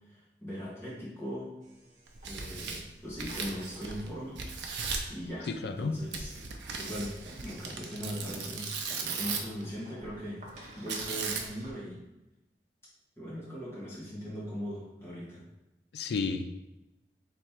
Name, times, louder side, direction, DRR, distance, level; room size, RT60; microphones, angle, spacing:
voice 1, 0.1-1.5 2.2-4.4 5.1-6.3 6.8-8.7 9.0-10.4 10.7-12.0 13.2-15.4, equal, 15° left, -8 dB, 1.4 m, -39 dB
sound 1, 1.6-11.7, equal, 40° right, 0.9 m, -53 dB
Tearing, 2.1-4.1 4.4-5.1 6.1-9.6 10.9-11.7, right 5 dB, 85° right, 0.6 m, -37 dB
voice 2, 5.5-6.0 15.9-16.5, left 4 dB, 70° left, 9 dB, 0.4 m, -32 dB
3.6 x 3.1 x 4.4 m, 0.95 s
head